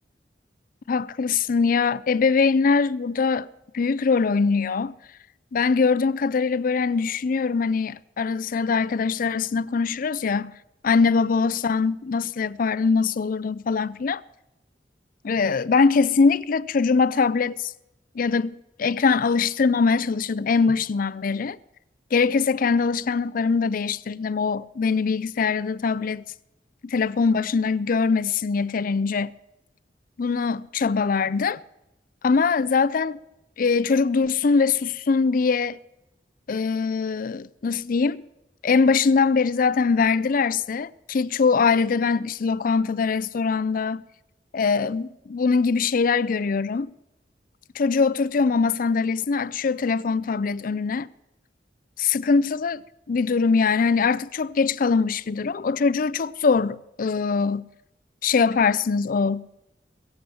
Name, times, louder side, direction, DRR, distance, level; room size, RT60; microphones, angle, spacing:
voice 1, 0.9-3.5 3.7-4.9 5.5-10.5 10.8-14.2 15.2-17.7 18.2-21.6 22.1-26.2 26.8-29.3 30.2-31.6 32.2-33.2 33.6-35.8 36.5-38.2 38.6-44.0 44.5-46.9 47.7-51.1 52.0-52.8 53.1-57.7 58.2-59.5, left 5 dB, 50° left, 0.4 m, -22 dB
22.5 x 7.7 x 7.1 m
head